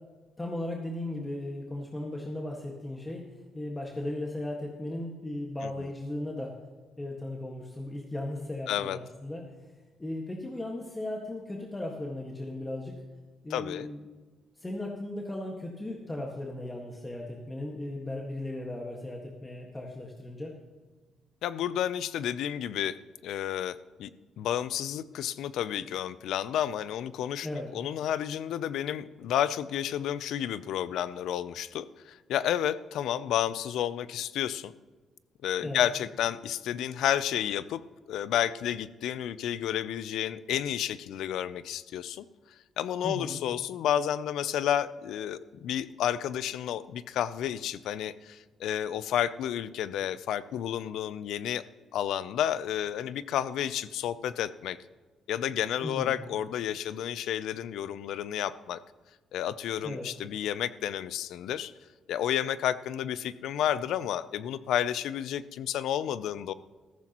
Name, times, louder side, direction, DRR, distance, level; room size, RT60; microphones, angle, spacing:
voice 1, 0.4-3.3 3.5-6.5 7.0-9.4 10.0-13.0 13.4-14.0 14.6-20.5 27.4-27.7 35.6-35.8 43.0-43.4 55.8-56.2 59.8-60.1, left 1 dB, 15° left, -1 dB, 1.6 m, -36 dB
voice 2, 8.7-9.0 13.5-13.9 21.4-23.0 23.2-24.1 24.4-27.5 27.7-34.7 35.4-37.8 38.1-42.2 42.8-51.6 51.9-54.8 55.3-58.8 59.3-61.7 62.1-66.5, left 10 dB, 80° left, 16 dB, 0.5 m, -31 dB
14.5 x 14.0 x 3.0 m, 1.3 s
cardioid pair, 90°, 0 cm